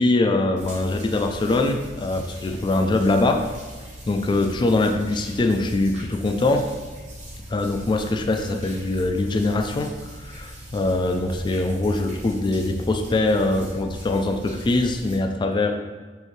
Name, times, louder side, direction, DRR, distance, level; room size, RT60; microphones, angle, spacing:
voice 1, 0.0-3.4 4.1-6.7 7.5-15.8, left 2 dB, 25° left, 5 dB, 0.3 m, -23 dB
sound 1, 0.6-15.2, equal, 45° right, 1.2 m, -40 dB
6.3 x 2.6 x 3.1 m, 1.4 s
head